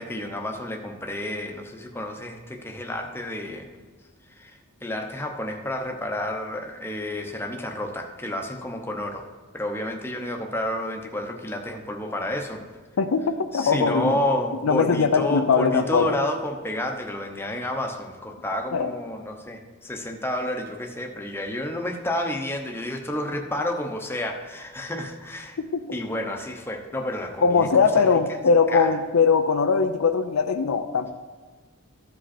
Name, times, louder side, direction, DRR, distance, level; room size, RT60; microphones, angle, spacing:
voice 1, 0.0-3.7 4.3-9.2 9.5-12.6 13.5-25.6 25.9-27.7 28.0-28.1 28.7-28.9, left 1 dB, 10° left, 2 dB, 0.8 m, -30 dB
voice 2, 13.0-14.1 14.6-16.2 18.7-18.9 25.6-25.8 27.4-31.1, left 5 dB, 80° left, 8 dB, 0.5 m, -21 dB
14.0 x 5.2 x 4.3 m, 1.4 s
head